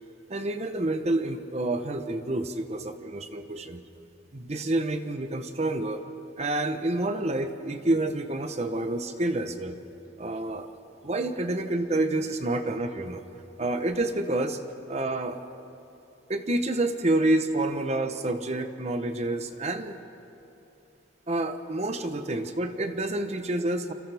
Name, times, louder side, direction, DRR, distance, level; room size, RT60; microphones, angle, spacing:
voice 1, 0.3-3.8 4.3-6.0 6.4-9.8 10.2-10.7 11.0-13.2 13.6-14.6 14.9-15.4 16.3-20.0 21.3-23.9, right 2 dB, 35° right, 8 dB, 0.9 m, -28 dB
29.5 x 26.0 x 3.5 m, 2.8 s
head